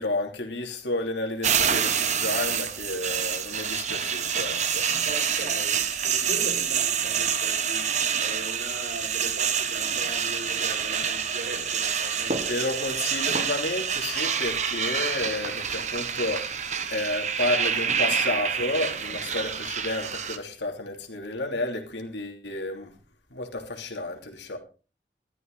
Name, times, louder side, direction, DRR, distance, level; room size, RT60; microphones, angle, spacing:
voice 1, 0.0-4.9 12.5-22.9 23.3-24.6, left 2 dB, 90° left, 3.1 m, -31 dB
sound 1, 1.4-20.4, right 7 dB, 40° right, 1.2 m, -27 dB
voice 2, 5.0-12.6, right 1 dB, 65° right, 5.8 m, -39 dB
13.5 x 13.5 x 4.0 m
head